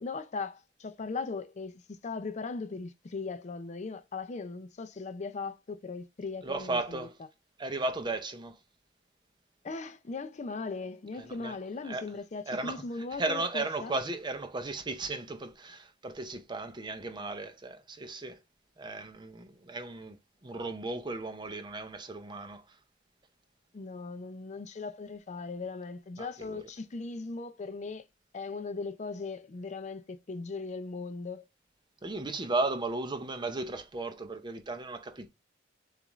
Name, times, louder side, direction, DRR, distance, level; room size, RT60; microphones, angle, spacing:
voice 1, 0.0-7.1 9.6-13.9 23.7-28.0 28.3-31.4, left 4 dB, 40° left, 0.5 m, -38 dB
voice 2, 6.4-7.2 7.6-8.6 11.2-11.6 11.8-12.1 12.5-18.4 18.8-20.2 20.4-22.8 26.2-26.7 32.0-35.3, right 2 dB, 25° right, 0.6 m, -35 dB
7.0 x 2.5 x 3.0 m
head